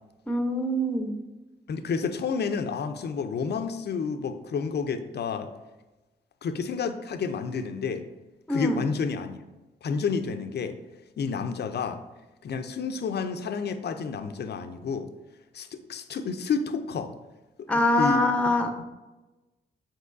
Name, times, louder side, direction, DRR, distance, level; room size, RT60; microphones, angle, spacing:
voice 1, 0.3-1.1 8.5-8.8 17.7-18.7, left 1 dB, 5° left, 5 dB, 0.6 m, -24 dB
voice 2, 1.7-5.5 6.4-8.0 8.5-9.4 9.8-10.8 11.2-12.0 12.4-15.1 15.5-17.1 17.6-18.2 18.8-18.9, left 5 dB, 55° left, 9 dB, 0.5 m, -30 dB
5.3 x 3.6 x 2.5 m, 1.1 s
supercardioid pair, 50°, 20 cm